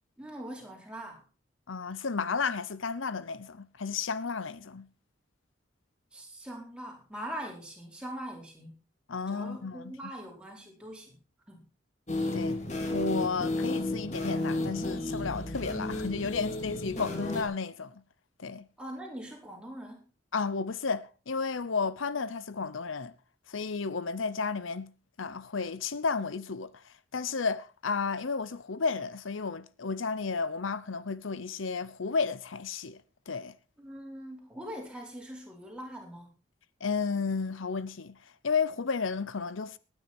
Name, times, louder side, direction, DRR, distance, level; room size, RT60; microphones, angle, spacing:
voice 1, 0.2-1.2 6.1-8.8 9.3-11.2 11.5-11.7 18.8-20.0 33.8-36.3, equal, 5° right, 4.4 m, -42 dB
voice 2, 1.7-4.9 9.1-9.9 12.3-12.6 12.9-18.0 18.4-18.7 20.3-23.1 23.5-24.9 25.2-33.0 33.3-33.5 36.8-38.2 38.4-39.8, left 5 dB, 80° left, 0.8 m, -32 dB
sound 1, 12.1-17.4, left 2 dB, 35° left, 3.0 m, -32 dB
19.0 x 9.8 x 4.4 m
head